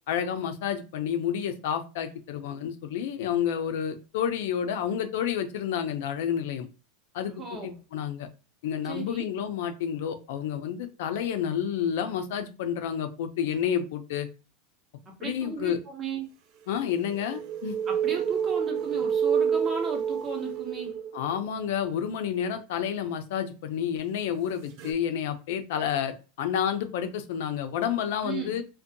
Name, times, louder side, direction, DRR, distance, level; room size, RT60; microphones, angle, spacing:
voice 1, 0.1-6.7 7.1-8.3 8.6-14.3 15.2-15.8 16.7-17.8 21.1-28.6, left 8 dB, 75° left, 8 dB, 0.4 m, -30 dB
voice 2, 7.4-7.8 8.8-9.2 15.2-16.2 17.9-21.0 28.2-28.6, right 4 dB, 25° right, 2 dB, 0.7 m, -35 dB
sound 1, 16.8-21.5 24.8-24.9, right 8 dB, 50° right, 0.3 m, -28 dB
2.6 x 2.1 x 2.6 m, 0.32 s
supercardioid pair, 155°, 0 cm